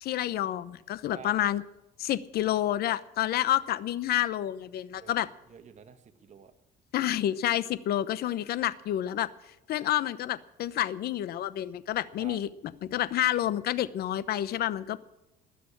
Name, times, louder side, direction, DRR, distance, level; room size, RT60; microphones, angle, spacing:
voice 1, 0.0-1.6 2.0-5.3 6.9-9.3 9.7-12.5 12.8-15.0, left 12 dB, 65° left, 17 dB, 0.9 m, -29 dB
voice 2, 5.5-6.5 12.2-12.4, right 6 dB, 45° right, 7 dB, 1.7 m, -48 dB
20.5 x 6.9 x 8.7 m, 0.93 s
cardioid pair, 110°, 17 cm